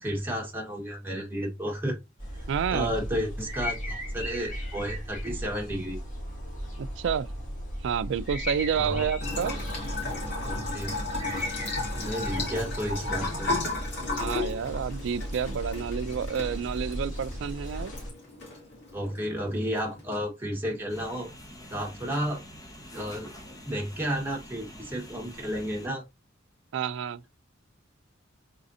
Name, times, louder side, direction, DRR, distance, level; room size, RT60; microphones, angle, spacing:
voice 1, 0.0-2.0 2.3-6.0 8.7-9.1 10.4-10.9 11.6-13.5 18.9-21.3 21.7-22.4 22.9-23.3 23.7-26.0, equal, 10° right, 1.4 m, -32 dB
sound 1, 2.2-18.1, equal, 40° left, 2.1 m, -36 dB
voice 2, 2.5-2.9 6.8-7.3 7.8-9.6 14.1-17.9 26.7-27.3, right 7 dB, 65° right, 0.3 m, -29 dB
Bathtub (filling or washing) / Trickle dribble, 9.2-20.2, left 3 dB, 60° left, 2.3 m, -35 dB
sound 2, 20.9-25.9, equal, 20° left, 1.1 m, -46 dB
4.1 x 3.8 x 2.7 m
head